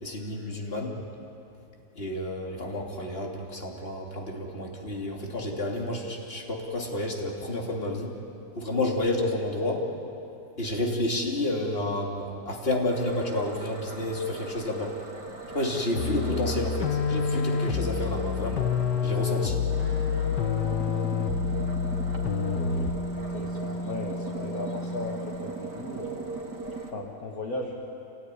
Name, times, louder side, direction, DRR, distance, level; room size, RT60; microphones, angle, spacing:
voice 1, 0.0-0.9 1.9-8.1 8.5-9.9 10.6-15.0 15.5-18.7 19.0-19.6, left 1 dB, 35° left, -1 dB, 3.2 m, -30 dB
sound 1, 12.9-26.9, right 3 dB, 75° right, 3.2 m, -40 dB
sound 2, 16.0-23.1, left 7 dB, 80° left, 1.6 m, -28 dB
sound 3, 19.8-25.8, right 1 dB, 10° left, 1.0 m, -35 dB
voice 2, 22.6-26.4 26.9-27.7, left 2 dB, 60° left, -1 dB, 2.2 m, -37 dB
27.5 x 18.5 x 10.0 m, 2.8 s
omnidirectional pair, 1.8 m